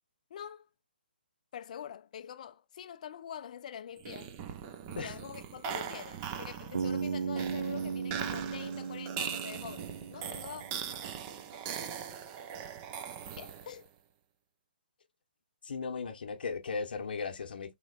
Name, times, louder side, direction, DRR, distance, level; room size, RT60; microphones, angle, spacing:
voice 1, 0.3-0.7 1.5-4.4 4.9-10.6 13.4-13.9, left 9 dB, 45° left, 0.4 m, -45 dB
sound 1, 4.0-13.9, right 8 dB, 20° right, 0.4 m, -41 dB
Bass guitar, 6.7-10.8, right 5 dB, 75° right, 0.5 m, -36 dB
voice 2, 15.6-17.7, left 5 dB, 65° left, 0.8 m, -37 dB
3.8 x 2.9 x 2.3 m
hypercardioid pair, 150°, 5 cm